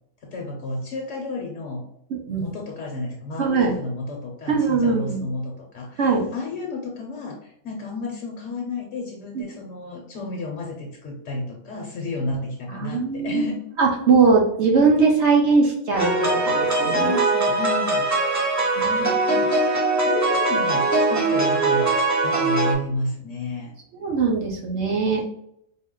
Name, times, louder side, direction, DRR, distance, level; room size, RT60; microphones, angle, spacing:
voice 1, 0.2-1.8 2.4-13.7 16.7-18.3 18.9-21.9 22.2-23.7 25.0-25.2, left 2 dB, 65° left, 0 dB, 1.0 m, -32 dB
voice 2, 2.1-2.5 3.4-3.7 4.5-5.3 6.0-6.3 9.3-9.4 12.7-13.4 13.8-17.1 18.8-19.1 24.0-25.2, right 4 dB, 60° right, 0 dB, 1.0 m, -20 dB
sound 1, 15.9-22.7, right 2 dB, 20° right, 0.5 m, -21 dB
4.2 x 2.0 x 3.7 m, 0.74 s
omnidirectional pair, 1.4 m